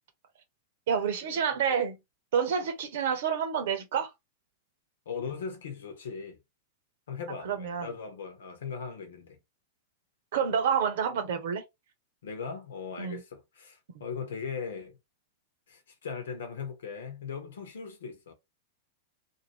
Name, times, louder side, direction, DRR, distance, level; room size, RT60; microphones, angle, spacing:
voice 1, 0.9-2.0 2.3-4.1 7.4-7.9 10.3-11.6 13.0-13.2, right 7 dB, 65° right, 0.9 m, -28 dB
voice 2, 5.0-6.4 7.1-9.4 12.2-15.0 15.7-18.3, left 6 dB, 75° left, 1.1 m, -39 dB
2.8 x 2.7 x 2.9 m
hypercardioid pair, 100°, 0 cm